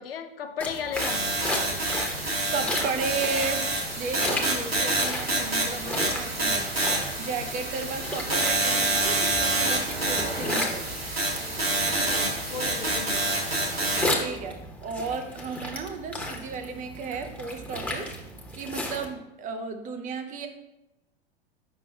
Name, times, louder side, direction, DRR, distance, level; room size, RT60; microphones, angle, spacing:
voice 1, 0.0-1.4 12.0-13.3, left 6 dB, 70° left, 6 dB, 0.7 m, -35 dB
sound 1, 0.6-19.1, left 1 dB, 5° left, 1.1 m, -35 dB
sound 2, 0.9-14.1, right 2 dB, 90° right, 1.8 m, -27 dB
voice 2, 2.5-3.7 4.0-6.7 7.2-11.0 14.2-18.1 18.5-20.5, right 4 dB, 25° right, 6 dB, 0.7 m, -34 dB
8.1 x 5.8 x 2.3 m, 0.93 s
figure-of-eight pair, 90°, 30 cm